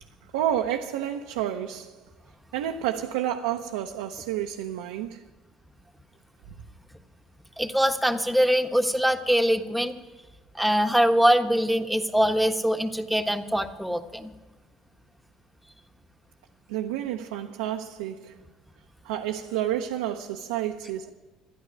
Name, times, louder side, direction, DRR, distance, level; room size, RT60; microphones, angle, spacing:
voice 1, 0.3-2.0 2.5-5.2 16.7-18.3 19.0-21.1, right 11 dB, 90° right, 0.8 m, -30 dB
voice 2, 7.6-9.9 10.5-14.3, equal, ahead, 1.3 m, -23 dB
13.0 x 10.5 x 9.6 m
supercardioid pair, 80°, 0 cm